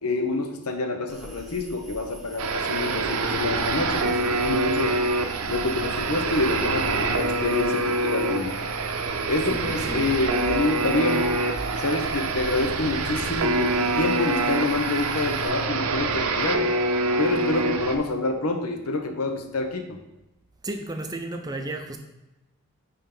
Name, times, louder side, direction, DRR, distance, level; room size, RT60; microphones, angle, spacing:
voice 1, 0.0-5.0 5.5-8.6 9.3-11.3 11.8-16.6 17.2-20.0, left 2 dB, 85° left, 6 dB, 0.9 m, -27 dB
sound 1, 1.1-15.5, right 1 dB, ahead, 0.9 m, -43 dB
sound 2, 2.4-18.0, right 3 dB, 80° right, 0.6 m, -26 dB
voice 2, 9.2-10.1 20.6-22.0, right 2 dB, 15° right, 5 dB, 0.5 m, -34 dB
9.8 x 3.6 x 3.8 m, 0.99 s
head